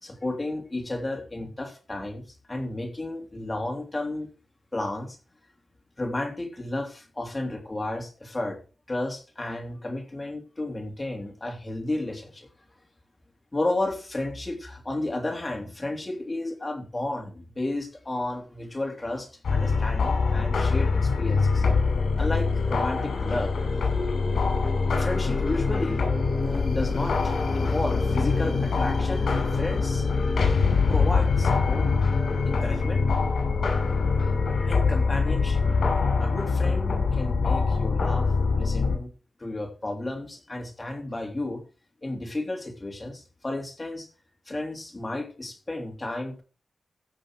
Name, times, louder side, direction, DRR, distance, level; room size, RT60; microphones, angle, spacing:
voice 1, 0.0-4.3 4.7-5.2 6.0-8.6 8.9-12.5 13.5-21.7 22.2-23.6 25.0-26.0 26.3-30.1 30.9-31.8 32.4-33.0 34.7-35.7 36.2-39.1 39.4-41.6 42.0-44.1 44.5-46.4, left 2 dB, 25° left, 2 dB, 3.2 m, -32 dB
sound 1, 19.4-39.0, left 4 dB, 80° left, 6.0 m, -24 dB
15.5 x 6.3 x 4.9 m, 0.35 s
wide cardioid pair, 120°, 0 cm